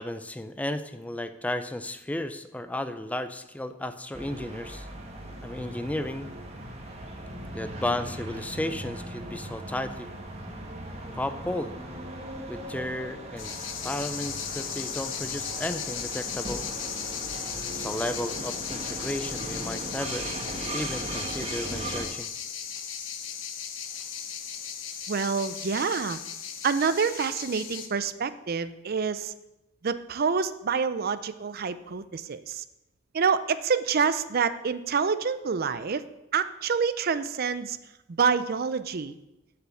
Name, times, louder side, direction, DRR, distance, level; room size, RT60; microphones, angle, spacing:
voice 1, 0.0-4.9 5.4-6.3 7.5-10.1 11.1-11.7 12.5-13.5 13.8-16.7 17.3-20.2 20.7-22.3, left 1 dB, 5° left, 10 dB, 0.4 m, -34 dB
sound 1, 4.1-22.1, right 1 dB, 30° right, 1.3 m, -38 dB
sound 2, 13.4-27.9, left 8 dB, 70° left, 1.0 m, -36 dB
voice 2, 25.1-26.2 26.6-29.3 29.8-32.6 33.1-36.0 36.3-37.8 38.1-39.1, right 5 dB, 50° right, 13 dB, 0.5 m, -27 dB
7.8 x 5.8 x 7.6 m, 0.94 s
head